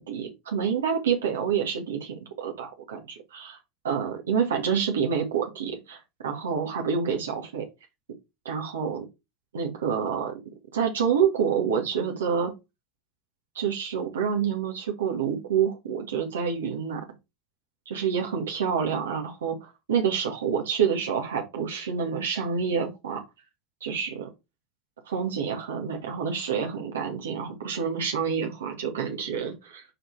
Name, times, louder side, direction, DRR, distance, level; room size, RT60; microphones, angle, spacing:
voice 1, 0.0-3.5 3.8-7.7 8.5-9.1 9.5-10.3 10.7-12.5 13.6-17.0 17.9-23.2 23.8-24.3 25.1-29.8, right 7 dB, 85° right, 1 dB, 1.8 m, -28 dB
5.0 x 4.7 x 4.7 m, 0.23 s
hypercardioid pair, 85°, 0 cm